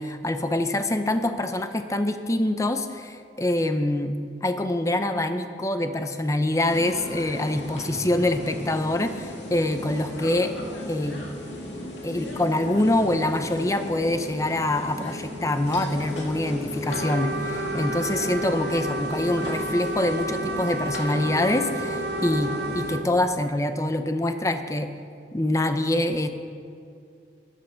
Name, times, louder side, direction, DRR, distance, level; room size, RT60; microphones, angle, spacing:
voice 1, 0.0-4.1 4.4-10.5 10.9-11.2 12.0-24.9 25.3-26.3, left 1 dB, 15° left, 8 dB, 0.6 m, -25 dB
sound 1, 6.6-23.0, left 1 dB, 90° left, 2.4 m, -35 dB
Trumpet, 16.9-23.1, right 2 dB, 55° right, 0.6 m, -31 dB
14.0 x 10.0 x 5.7 m, 2.4 s
head